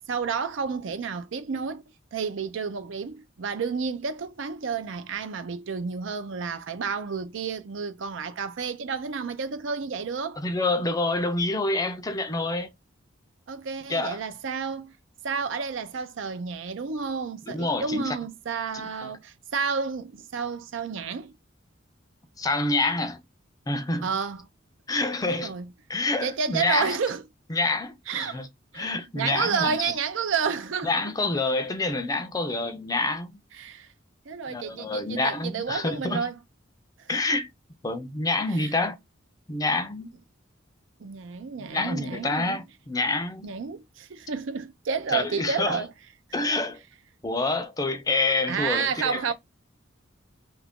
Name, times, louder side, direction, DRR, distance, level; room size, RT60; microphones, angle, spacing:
voice 1, 0.0-1.8 2.1-10.4 13.5-14.9 15.2-21.3 24.0-24.4 25.2-25.7 26.2-27.2 28.1-28.4 28.7-30.9 33.5-33.9 34.3-36.3 37.3-37.4 38.5-38.7 41.0-42.6 43.4-45.9 46.4-46.7 48.5-49.3, right 5 dB, 75° right, 0.5 m, -30 dB
voice 2, 10.4-12.7 13.9-14.2 17.5-18.2 19.0-19.1 22.4-23.2 23.7-24.1 24.9-25.6 25.9-27.0 27.5-28.5 28.7-29.9 30.8-33.3 34.5-36.3 37.1-37.5 37.8-39.0 39.5-40.1 41.6-43.5 45.1-45.8 46.3-46.8 47.2-49.3, left 2 dB, 20° left, 0.4 m, -27 dB
2.9 x 2.4 x 3.4 m
head